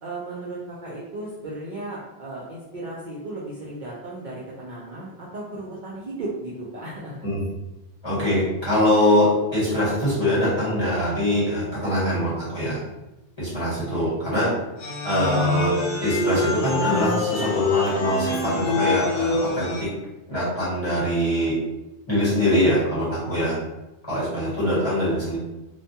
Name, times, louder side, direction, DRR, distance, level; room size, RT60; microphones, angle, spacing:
voice 1, 0.0-7.3, right 2 dB, 60° right, -5 dB, 0.5 m, -35 dB
voice 2, 8.0-12.8 13.4-14.5 15.0-19.9 20.3-21.5 22.1-23.6 24.1-25.4, equal, 25° left, -9 dB, 1.1 m, -23 dB
sound 1, 14.8-19.8, left 3 dB, 60° left, 0.8 m, -25 dB
2.2 x 2.2 x 2.7 m, 1.0 s
omnidirectional pair, 1.2 m